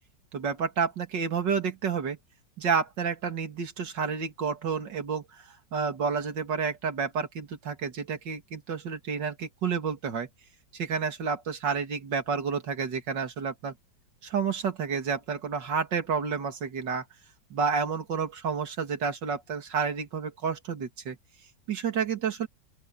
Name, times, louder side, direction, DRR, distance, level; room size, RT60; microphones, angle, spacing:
voice 1, 0.3-2.2 2.6-10.3 10.7-13.7 14.2-17.0 17.5-21.2 21.7-22.5, right 6 dB, 65° right, 2.9 m, -30 dB
open air
omnidirectional pair, 2.1 m